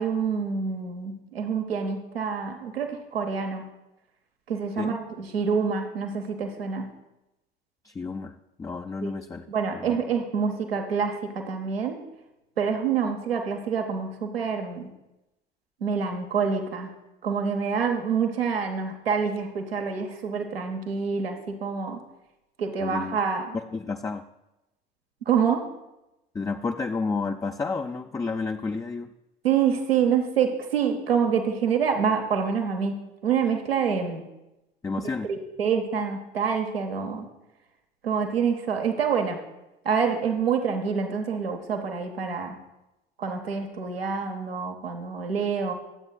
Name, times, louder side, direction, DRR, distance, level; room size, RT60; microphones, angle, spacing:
voice 1, 0.0-3.6 4.5-6.9 9.0-9.1 9.5-12.0 12.6-14.9 15.8-16.9 17.2-22.0 22.6-23.6 25.3-25.6 29.4-34.2 35.2-37.2 38.0-39.4 39.8-42.6 43.2-45.7, right 6 dB, 85° right, 4 dB, 1.0 m, -27 dB
voice 2, 7.8-8.3 8.6-9.5 9.7-10.0 22.8-23.2 23.5-24.2 26.3-29.1 34.8-35.3, left 4 dB, 10° left, 5 dB, 0.4 m, -31 dB
22.0 x 7.9 x 2.3 m, 0.95 s
figure-of-eight pair, 60°, 29 cm